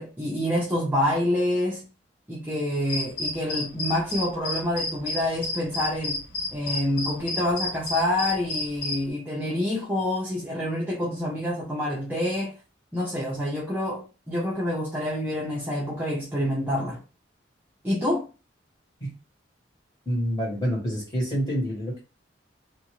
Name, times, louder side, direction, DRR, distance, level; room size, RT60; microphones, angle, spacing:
voice 1, 0.0-1.8 2.3-6.2 6.5-12.5 12.9-17.0 17.8-18.2, left 1 dB, 10° right, 0.5 m, -27 dB
sound 1, 2.9-9.0, left 3 dB, 75° left, 1.5 m, -32 dB
voice 2, 20.0-22.0, equal, 20° left, 1.4 m, -27 dB
2.6 x 2.5 x 3.0 m
head